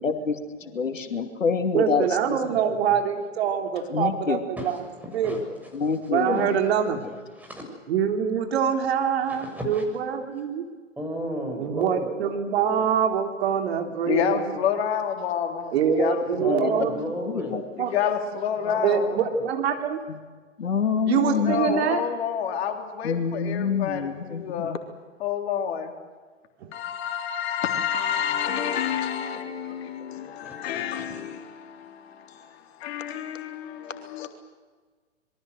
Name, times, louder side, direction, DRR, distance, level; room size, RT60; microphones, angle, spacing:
voice 1, 0.0-2.4 3.9-4.4 5.7-6.6 16.3-16.8 17.3-17.6 20.1-20.2 20.6-21.8 23.0-24.8, left 5 dB, 75° left, 2.6 m, -27 dB
voice 2, 0.6-1.2 2.4-3.0 4.5-6.5 7.3-7.6 8.2-8.4 8.9-9.8 10.3-10.5 11.0-12.1 16.4-17.6 18.6-19.4 30.4-31.1, equal, 5° right, 6.6 m, -36 dB
voice 3, 1.7-4.8 5.1-5.4 6.1-7.1 7.9-10.7 11.6-14.4 15.7-17.0 17.8-17.9 18.8-20.0 21.0-22.0 26.6-26.7, right 7 dB, 55° right, 3.4 m, -24 dB
voice 4, 14.0-16.2 17.8-19.2 21.3-24.7 25.2-25.9 26.7-34.3, left 8 dB, 50° left, 3.6 m, -29 dB
26.5 x 22.5 x 8.1 m
figure-of-eight pair, 115°, 38 cm